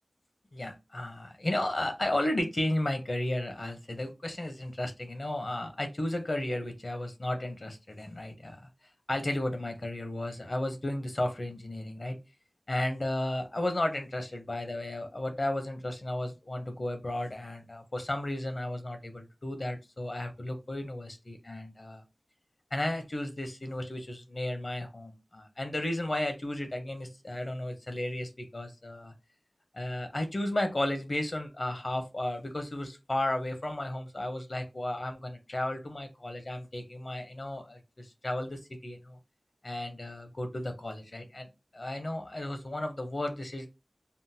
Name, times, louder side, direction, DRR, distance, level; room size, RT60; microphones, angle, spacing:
voice 1, 0.5-8.6 9.1-12.2 12.7-22.0 22.7-29.1 29.7-39.2 39.6-43.7, left 1 dB, 55° left, 6 dB, 0.7 m, -34 dB
3.6 x 2.0 x 2.6 m, 0.26 s
wide cardioid pair, 50°, 0 cm